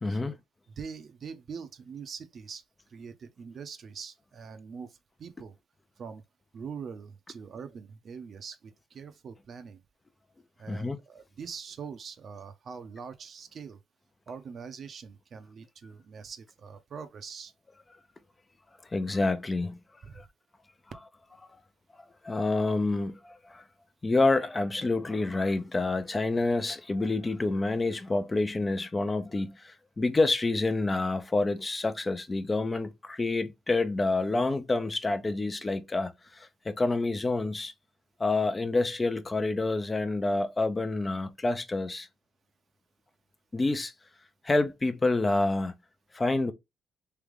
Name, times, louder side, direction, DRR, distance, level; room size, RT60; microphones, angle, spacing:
voice 1, 0.0-0.3 10.7-11.0 18.9-19.8 20.2-20.3 22.2-23.6 24.0-37.7 38.2-42.1 43.5-43.9 44.4-45.7 46.1-46.5, left 2 dB, 25° left, 0.6 m, -28 dB
voice 2, 0.8-5.6 6.0-6.2 6.5-9.8 10.6-13.8 14.3-17.5 20.0-20.3, right 6 dB, 55° right, 0.7 m, -43 dB
3.4 x 2.9 x 3.6 m
cardioid pair, 90°, 0 cm